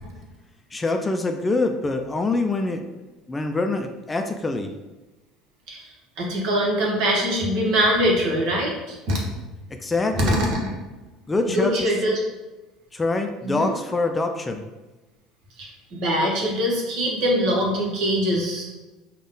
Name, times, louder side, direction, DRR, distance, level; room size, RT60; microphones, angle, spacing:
voice 1, 0.7-2.8 3.3-4.7 9.7-10.4 11.3-11.9 12.9-14.6, left 2 dB, 20° left, 5 dB, 0.5 m, -25 dB
voice 2, 6.2-9.3 10.3-10.6 11.4-12.2 13.4-13.7 15.6-18.7, equal, 60° right, -2 dB, 1.3 m, -23 dB
5.1 x 2.4 x 3.8 m, 1.1 s
hypercardioid pair, 70°, 0 cm